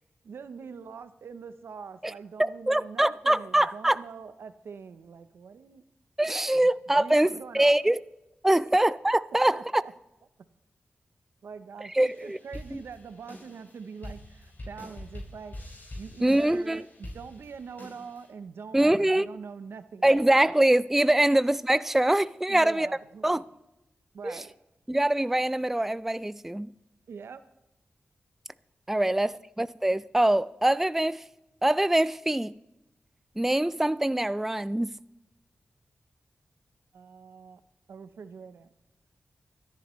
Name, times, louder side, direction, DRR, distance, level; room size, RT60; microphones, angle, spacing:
voice 1, 0.2-5.8 6.5-6.7 7.0-7.7 8.5-8.8 9.5-9.9 10.4-10.5 11.4-15.6 16.0-20.3 22.5-23.5 24.1-24.5 27.1-27.4 36.9-37.6 37.9-38.7, right 5 dB, 80° right, 0.7 m, -44 dB
voice 2, 2.4-4.0 6.2-7.3 7.5-8.0 8.4-9.8 11.9-12.4 12.7-12.8 16.2-16.8 18.7-19.3 20.0-22.9 23.2-23.4 24.2-24.4 24.9-26.7 28.9-31.2 31.6-32.5 33.4-35.0, right 1 dB, 5° right, 0.4 m, -24 dB
sound 1, 12.0-18.3, left 1 dB, 50° left, 5.7 m, -45 dB
24.5 x 10.5 x 3.1 m
cardioid pair, 60°, 4 cm